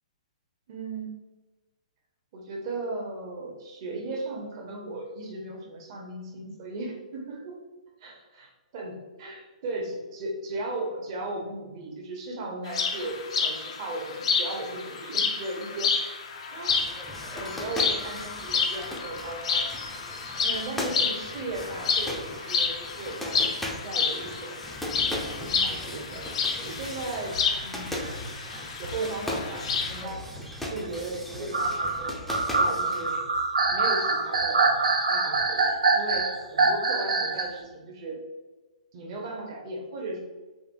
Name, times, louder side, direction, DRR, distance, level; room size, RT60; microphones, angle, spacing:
voice 1, 0.7-1.1 2.3-7.6 8.0-8.5 8.7-15.9 16.5-16.9 17.2-20.0 20.3-26.2 26.6-28.0 28.7-30.2 30.6-32.2 32.5-33.2 33.7-34.8 35.1-38.2 38.9-40.2, right 2 dB, 45° right, 0 dB, 0.9 m, -36 dB
sound 1, 12.7-30.0, left 5 dB, 55° left, 0.5 m, -30 dB
sound 2, 16.7-33.2, left 1 dB, 5° left, 0.5 m, -38 dB
sound 3, 26.7-29.0 29.5-30.7 31.3-37.6, right 3 dB, 70° right, 0.5 m, -25 dB
3.9 x 2.7 x 2.6 m, 1.2 s
figure-of-eight pair, 120°, 4 cm